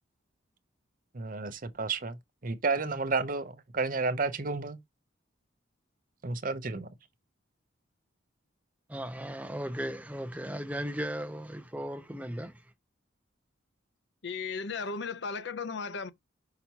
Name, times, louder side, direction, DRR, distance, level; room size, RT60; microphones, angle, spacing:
voice 1, 1.1-2.2 2.4-4.8 6.2-6.9, right 3 dB, 40° right, 0.7 m, -31 dB
voice 2, 8.9-12.6, equal, 5° right, 0.5 m, -36 dB
voice 3, 14.2-16.1, left 5 dB, 60° left, 0.6 m, -35 dB
5.7 x 5.7 x 2.9 m
head